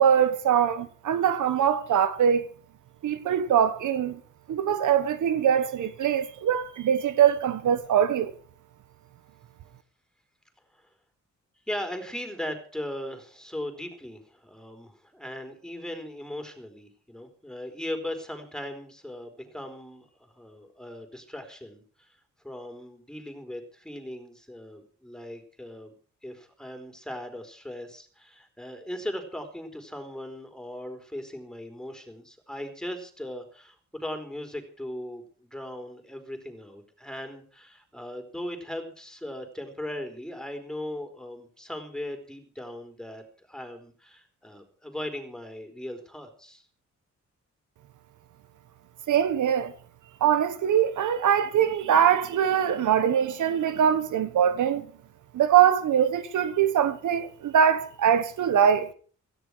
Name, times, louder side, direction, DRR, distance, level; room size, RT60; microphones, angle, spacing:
voice 1, 0.0-2.5 3.0-4.2 4.5-8.3 49.1-49.7 50.2-54.9 55.3-58.9, right 9 dB, 85° right, 1.3 m, -22 dB
voice 2, 11.7-22.2 22.4-25.9 26.2-46.6, left 1 dB, ahead, 4.3 m, -38 dB
17.5 x 14.5 x 4.8 m
cardioid pair, 85°, 29 cm